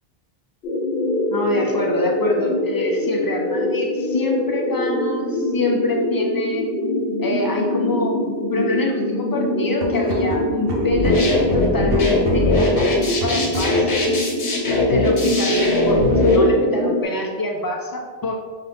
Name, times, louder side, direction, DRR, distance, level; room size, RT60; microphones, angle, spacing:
sound 1, 0.6-17.0, left 1 dB, 65° left, 0.7 m, -24 dB
voice 1, 1.3-6.6 7.2-8.2 8.5-14.1 14.9-18.3, left 2 dB, 30° left, 1 dB, 0.4 m, -25 dB
sound 2, 9.7-13.9, right 2 dB, 65° right, 0.9 m, -31 dB
sound 3, 10.9-16.4, left 2 dB, 90° left, 1.2 m, -20 dB
5.5 x 2.4 x 3.5 m, 1.5 s
omnidirectional pair, 1.1 m